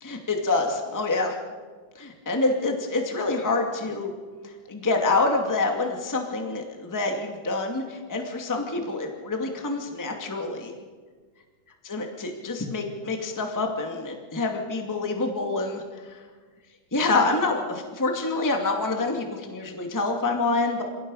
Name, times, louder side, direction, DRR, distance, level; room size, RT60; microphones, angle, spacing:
voice 1, 0.0-1.4 2.0-4.1 4.4-10.7 11.8-16.2 16.9-20.8, left 3 dB, 5° left, 2 dB, 1.8 m, -27 dB
28.0 x 17.0 x 5.6 m, 1.5 s
omnidirectional pair, 3.8 m